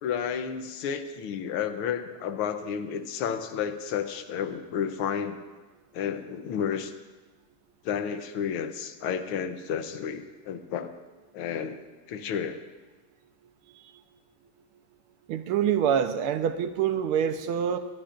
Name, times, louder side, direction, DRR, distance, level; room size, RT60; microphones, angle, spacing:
voice 1, 0.0-5.4 5.9-6.9 7.8-10.9 11.3-11.8 12.1-12.6, left 7 dB, 80° left, 9 dB, 1.8 m, -31 dB
voice 2, 15.3-17.8, right 8 dB, 85° right, 9 dB, 1.7 m, -25 dB
22.0 x 18.5 x 2.6 m, 1.2 s
omnidirectional pair, 2.4 m